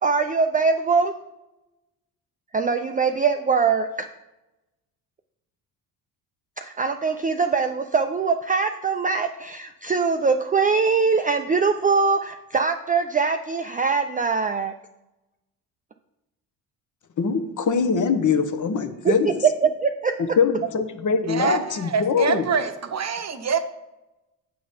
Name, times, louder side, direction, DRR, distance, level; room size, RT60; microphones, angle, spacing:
voice 1, 0.0-1.1 2.5-3.9 6.6-14.7 19.0-19.3 19.6-20.1, right 5 dB, 20° right, 0.4 m, -22 dB
voice 2, 17.2-19.4 20.2-22.4, left 5 dB, 45° left, 0.9 m, -23 dB
voice 3, 21.2-23.6, right 6 dB, 40° right, 0.8 m, -25 dB
7.7 x 3.9 x 5.1 m
hypercardioid pair, 55°, 43 cm